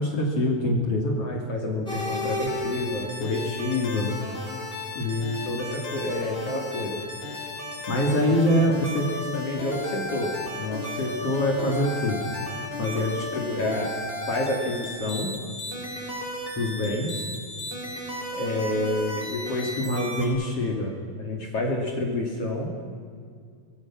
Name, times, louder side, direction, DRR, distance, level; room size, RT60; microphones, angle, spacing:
voice 1, 0.0-4.1 4.9-7.0 7.9-12.2 12.8-13.9 14.3-15.3 16.6-17.2 18.3-22.7, left 1 dB, 45° left, 1 dB, 3.3 m, -26 dB
sound 1, 1.8-20.3, left 1 dB, 15° left, 5.0 m, -34 dB
25.5 x 21.0 x 6.1 m, 2.2 s
omnidirectional pair, 4.2 m